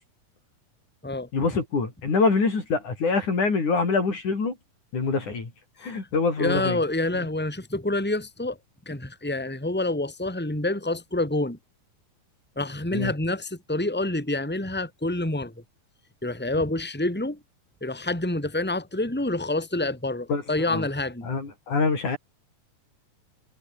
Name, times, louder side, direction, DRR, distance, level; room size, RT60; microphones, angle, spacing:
voice 1, 1.3-4.6 4.9-5.5 5.8-6.8 12.9-13.1 20.3-20.9 21.2-22.2, left 4 dB, 60° left, 7.0 m, -25 dB
voice 2, 6.4-8.6 8.8-11.6 12.6-15.5 16.2-17.4 17.8-21.3, left 2 dB, 5° left, 4.6 m, -27 dB
omnidirectional pair, 4.0 m